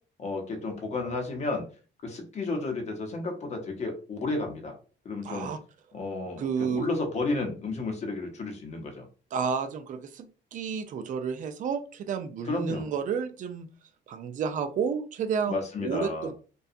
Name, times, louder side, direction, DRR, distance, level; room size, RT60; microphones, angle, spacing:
voice 1, 0.2-1.6 2.0-4.7 5.0-5.5 5.9-6.4 6.7-9.1 12.5-12.9 15.5-16.3, left 3 dB, 40° left, 3 dB, 0.7 m, -32 dB
voice 2, 5.2-5.6 6.4-6.9 9.3-13.7 14.1-16.3, right 6 dB, 45° right, 7 dB, 0.4 m, -31 dB
2.7 x 2.2 x 2.4 m, 0.37 s
cardioid pair, 150°, 18 cm